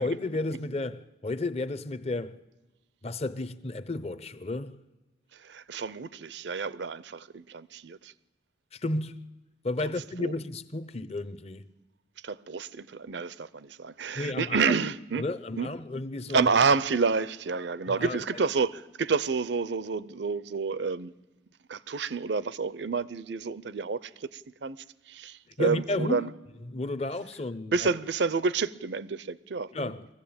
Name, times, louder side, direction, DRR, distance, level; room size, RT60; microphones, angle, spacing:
voice 1, 0.0-2.4 3.0-4.8 8.7-9.3 9.6-11.7 14.1-14.7 15.2-16.5 17.9-18.4 25.6-26.3 26.7-27.9 29.7-30.1, left 2 dB, 35° left, 0.7 m, -32 dB
voice 2, 5.3-8.1 9.8-9.9 10.2-10.3 12.2-15.2 15.6-15.7 16.3-21.2 21.7-26.3 27.7-29.7, right 4 dB, 65° right, 0.6 m, -29 dB
22.5 x 15.0 x 8.7 m
head